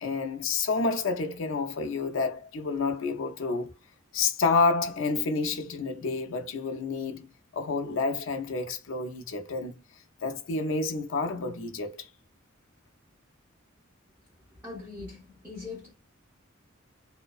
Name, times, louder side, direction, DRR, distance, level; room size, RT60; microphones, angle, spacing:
voice 1, 0.0-3.7 4.1-9.7 10.2-12.1, left 4 dB, 70° left, 0.5 m, -29 dB
voice 2, 14.5-15.9, left 3 dB, 10° right, 1.4 m, -41 dB
2.5 x 2.1 x 2.3 m
head